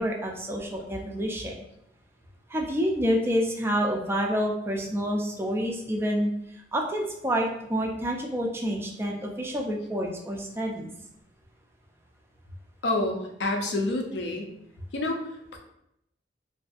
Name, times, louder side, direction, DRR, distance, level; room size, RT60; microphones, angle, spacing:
voice 1, 0.0-1.6 2.5-10.9, equal, 15° right, 0 dB, 0.3 m, -28 dB
voice 2, 12.8-14.5 14.9-15.6, left 2 dB, 70° left, 2 dB, 0.5 m, -28 dB
2.6 x 2.3 x 2.4 m, 0.79 s
head